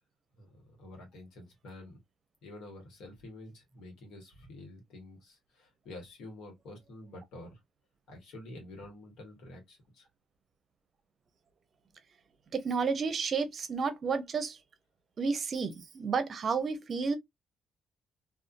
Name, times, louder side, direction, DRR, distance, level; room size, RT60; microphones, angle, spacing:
voice 1, 0.3-2.0 2.4-7.6 8.1-10.1, left 1 dB, 85° left, 1.2 m, -49 dB
voice 2, 12.5-14.6 15.2-17.2, right 5 dB, 50° right, 0.6 m, -31 dB
2.5 x 2.3 x 2.5 m
cardioid pair, 90°, 0 cm